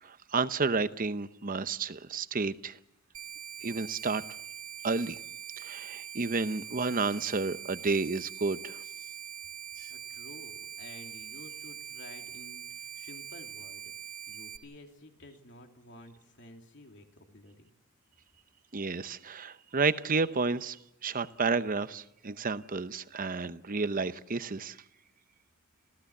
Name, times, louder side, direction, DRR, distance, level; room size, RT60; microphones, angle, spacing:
voice 1, 0.0-2.8 3.6-4.2 4.8-5.2 5.6-8.8 18.7-20.8 21.0-24.8, right 4 dB, 40° right, 0.8 m, -31 dB
sound 1, 3.1-14.6, right 9 dB, 80° right, 2.4 m, -43 dB
voice 2, 9.9-17.7, left 1 dB, 55° left, 3.0 m, -52 dB
30.0 x 15.0 x 7.2 m
head